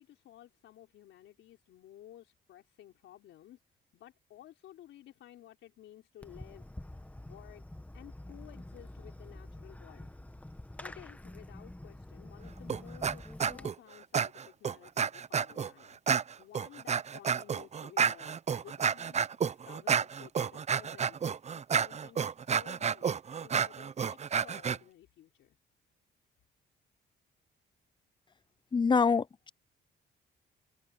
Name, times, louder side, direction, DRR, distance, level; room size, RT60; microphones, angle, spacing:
voice 1, 0.0-3.6 3.9-6.7 7.2-7.6 7.9-10.1 10.8-16.0 16.4-21.2 21.5-23.1 23.4-25.6, left 12 dB, 80° left, 4.1 m, -54 dB
Fireworks, 6.2-13.7, left 1 dB, 5° left, 1.6 m, -47 dB
sound 1, 12.7-13.1 13.4-13.7 14.1-15.7 16.1-24.8, right 7 dB, 35° right, 0.6 m, -30 dB
voice 2, 28.7-29.5, left 5 dB, 25° left, 0.5 m, -26 dB
cardioid pair, 90°, 20 cm